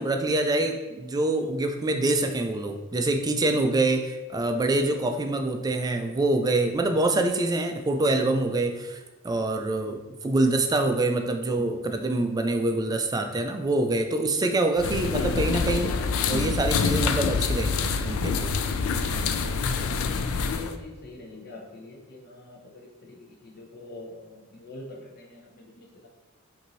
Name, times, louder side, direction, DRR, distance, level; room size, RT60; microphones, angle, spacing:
voice 1, 0.0-15.9 16.3-18.5, right 2 dB, 20° right, 6 dB, 0.3 m, -25 dB
sound 1, 14.8-20.7, left 5 dB, 75° left, 0.4 m, -26 dB
voice 2, 20.2-26.1, left 3 dB, 50° left, -2 dB, 0.8 m, -44 dB
5.2 x 2.6 x 3.1 m, 1.2 s
head